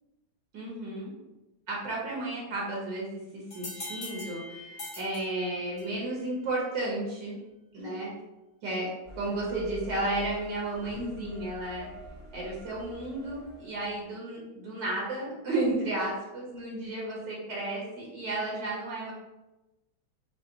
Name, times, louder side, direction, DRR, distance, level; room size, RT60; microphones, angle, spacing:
voice 1, 0.5-1.1 1.7-7.4 7.7-8.1 8.6-8.9 9.2-11.9 12.3-19.1, right 2 dB, 70° right, -4 dB, 1.8 m, -33 dB
sound 1, 3.5-6.1, left 2 dB, 30° left, 0.9 m, -42 dB
sound 2, 9.0-14.0, left 1 dB, 25° right, 0.7 m, -46 dB
5.7 x 2.1 x 4.0 m, 1.0 s
omnidirectional pair, 2.1 m